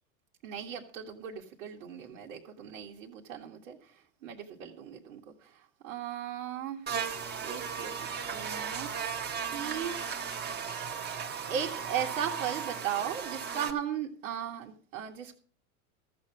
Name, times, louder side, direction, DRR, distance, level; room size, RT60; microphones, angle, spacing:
voice 1, 0.4-3.9 4.2-6.8 7.4-10.1 11.0-15.3, right 9 dB, 70° right, 2.1 m, -37 dB
Buzz, 6.9-13.7, right 7 dB, 25° right, 1.5 m, -36 dB
14.5 x 7.5 x 6.2 m
hypercardioid pair, 100°, 41 cm